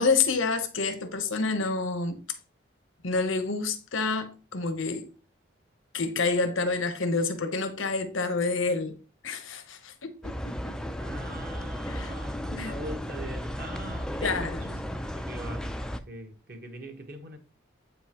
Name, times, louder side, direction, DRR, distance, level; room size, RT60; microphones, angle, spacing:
voice 1, 0.0-2.2 3.0-5.1 5.9-9.0 9.2-10.8 11.9-12.2 12.5-12.7 14.2-14.6, left 4 dB, 85° left, 1.0 m, -28 dB
sound 1, 10.2-16.0, equal, 5° left, 0.3 m, -34 dB
voice 2, 11.0-17.4, right 1 dB, 50° right, 1.4 m, -42 dB
8.4 x 5.4 x 3.0 m
head